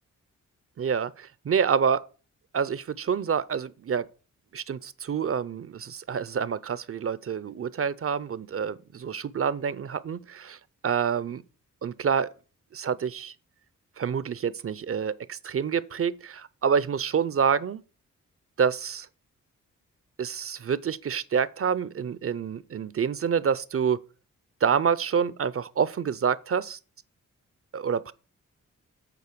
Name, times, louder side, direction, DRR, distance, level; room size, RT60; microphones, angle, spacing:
voice 1, 0.8-2.0 2.5-4.1 4.5-10.6 10.8-11.4 11.8-12.3 12.7-13.3 14.0-17.8 18.6-19.1 20.2-24.0 24.6-26.8 27.7-28.1, right 7 dB, 45° right, 0.5 m, -27 dB
8.4 x 4.3 x 6.7 m
cardioid pair, 75°, 31 cm